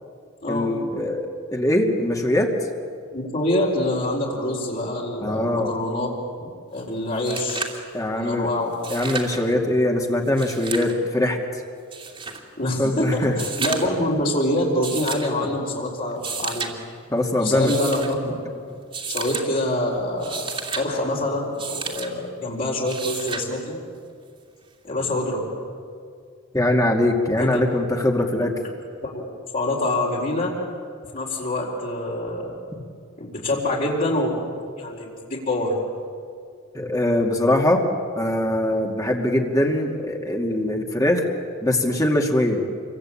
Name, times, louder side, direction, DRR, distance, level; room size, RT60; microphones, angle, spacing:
voice 1, 0.5-2.5 5.2-5.7 7.9-8.5 8.9-11.4 12.8-13.3 17.1-17.7 26.5-28.6 36.7-37.8 38.2-41.2 41.6-42.6, left 1 dB, 15° left, 1 dB, 2.5 m, -22 dB
voice 2, 3.1-6.1 6.4-7.6 8.1-8.7 12.6-16.7 17.3-18.5 19.1-20.4 20.7-23.8 24.8-25.4 27.4-27.6 29.0-29.2 29.5-30.5 31.1-32.5 33.2-34.4 34.8-35.7, left 1 dB, 45° left, -4 dB, 4.2 m, -25 dB
sound 1, 6.8-6.9 7.1-7.8 8.7-9.4 10.3-10.9 11.9-12.4 13.3-14.0 14.8-15.3 16.1-16.7 17.5-18.1 18.9-19.5 20.1-20.8 21.6-22.1 22.8-23.5 24.9-25.0, right 5 dB, 30° right, 2.8 m, -31 dB
28.0 x 23.5 x 8.7 m, 2.3 s
head